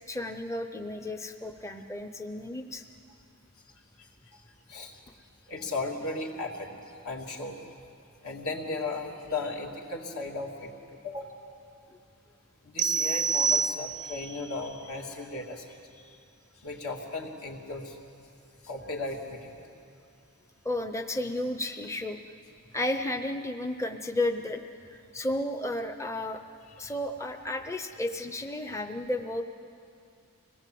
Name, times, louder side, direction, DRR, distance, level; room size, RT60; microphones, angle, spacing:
voice 1, 0.1-2.8 20.6-22.2 22.7-26.4 26.8-29.4, left 1 dB, 15° left, 6 dB, 0.7 m, -33 dB
voice 2, 5.5-6.8 7.0-7.6 8.2-10.7 11.0-11.4 12.6-15.7 16.6-18.0 18.6-19.7, left 3 dB, 75° left, 0 dB, 2.8 m, -36 dB
sound 1, 12.8-14.3, right 5 dB, 50° right, 0.5 m, -27 dB
25.5 x 18.5 x 7.7 m, 2.5 s
head